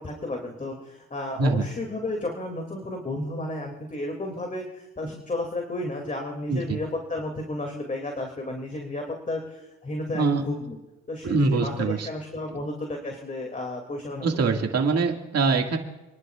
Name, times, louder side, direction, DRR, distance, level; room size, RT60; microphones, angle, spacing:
voice 1, 0.0-10.8 11.1-14.4, left 2 dB, 25° left, 2 dB, 2.7 m, -33 dB
voice 2, 11.2-12.1 14.2-15.8, right 3 dB, 55° right, 3 dB, 2.2 m, -23 dB
29.5 x 11.5 x 2.5 m, 1.1 s
cardioid pair, 90°, 30 cm